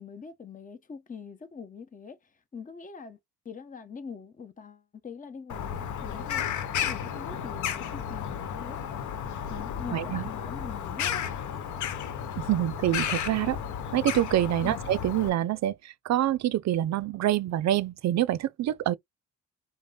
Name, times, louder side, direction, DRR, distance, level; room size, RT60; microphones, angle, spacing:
voice 1, 0.0-3.2 3.4-8.8 9.5-11.4 14.6-14.8, left 5 dB, 25° left, 0.9 m, -43 dB
Bird vocalization bird call bird song, 5.5-15.3, left 8 dB, 75° left, 0.9 m, -33 dB
voice 2, 9.9-10.2 12.4-13.6 13.9-18.9, right 13 dB, 65° right, 0.5 m, -26 dB
5.2 x 2.1 x 3.8 m
cardioid pair, 90°, 30 cm